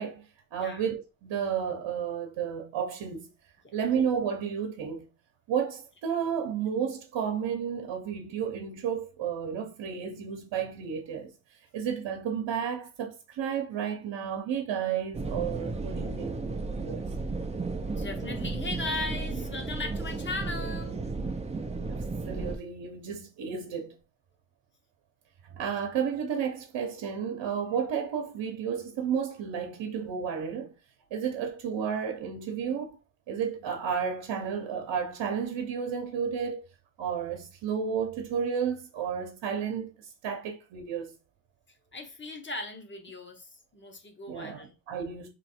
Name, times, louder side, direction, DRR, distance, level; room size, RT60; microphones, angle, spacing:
voice 1, 0.0-3.3 3.7-5.1 5.5-11.3 11.7-17.0 21.9-22.0 22.3-24.0 25.5-30.7 31.1-33.0 33.3-36.6 37.0-41.1 44.3-45.3, right 7 dB, 70° right, 0.9 m, -32 dB
sound 1, 15.1-22.6, right 3 dB, 15° right, 0.4 m, -33 dB
voice 2, 17.9-21.0 41.9-44.7, left 2 dB, 25° left, 0.8 m, -37 dB
3.1 x 3.1 x 4.3 m
cardioid pair, 130°, 44 cm